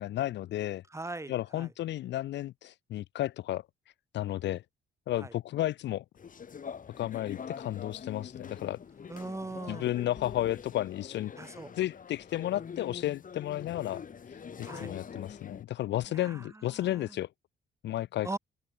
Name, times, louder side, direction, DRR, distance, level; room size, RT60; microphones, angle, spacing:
voice 1, 0.0-0.8 1.3-3.6 4.1-4.6 5.1-6.0 7.0-8.8 9.7-11.3 11.8-14.0 14.6-17.3 17.8-18.4, left 14 dB, 65° left, 0.4 m, -33 dB
voice 2, 0.9-1.7 5.2-5.3 9.1-9.9 11.4-11.7 14.6-15.0 16.1-17.2 18.2-18.4, right 2 dB, 15° right, 1.4 m, -40 dB
sound 1, 6.2-15.6, left 6 dB, 40° left, 2.0 m, -44 dB
open air
cardioid pair, 90°, 20 cm